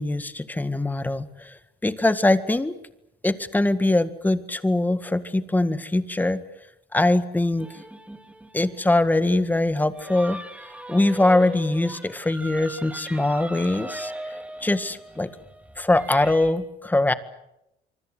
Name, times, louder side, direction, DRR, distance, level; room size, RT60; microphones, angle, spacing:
voice 1, 0.0-2.8 3.2-6.4 6.9-7.7 8.5-10.4 10.9-14.1 14.6-15.3 15.8-17.1, left 2 dB, 10° left, 11 dB, 1.8 m, -22 dB
sound 1, 7.6-16.5, right 1 dB, 5° right, 3.6 m, -39 dB
26.0 x 24.0 x 8.0 m, 0.85 s
cardioid pair, 110°, 17 cm